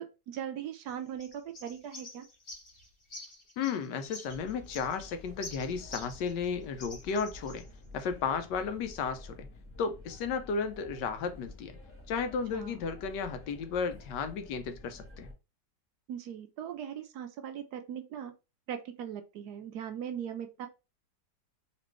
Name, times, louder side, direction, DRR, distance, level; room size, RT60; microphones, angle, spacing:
voice 1, 0.0-2.2 12.5-12.8 16.1-18.3 18.7-20.7, right 9 dB, 70° right, 1.0 m, -39 dB
sound 1, 0.9-6.5 6.8-7.7, left 2 dB, 35° left, 1.1 m, -48 dB
voice 2, 3.6-7.7 7.9-9.5 9.8-11.8 12.1-15.3, left 5 dB, 80° left, 1.2 m, -34 dB
sound 2, 4.3-15.3, left 2 dB, 15° left, 0.5 m, -50 dB
4.2 x 2.9 x 3.0 m
omnidirectional pair, 1.9 m